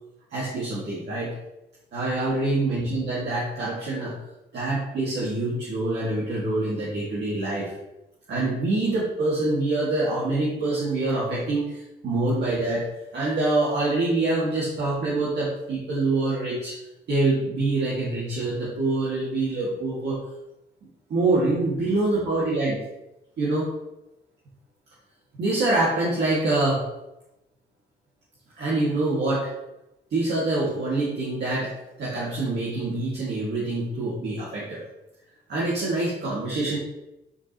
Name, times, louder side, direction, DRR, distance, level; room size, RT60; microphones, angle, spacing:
voice 1, 0.3-1.4 1.9-4.1 4.5-7.7 8.3-12.9 13.1-16.8 17.1-20.2 21.1-22.8 23.4-23.7 25.4-26.8 28.6-29.5 30.1-31.7 32.0-34.8 35.5-36.8, right 2 dB, 60° right, -7 dB, 2.1 m, -25 dB
9.6 x 4.9 x 3.0 m, 0.93 s
cardioid pair, 90°, 20 cm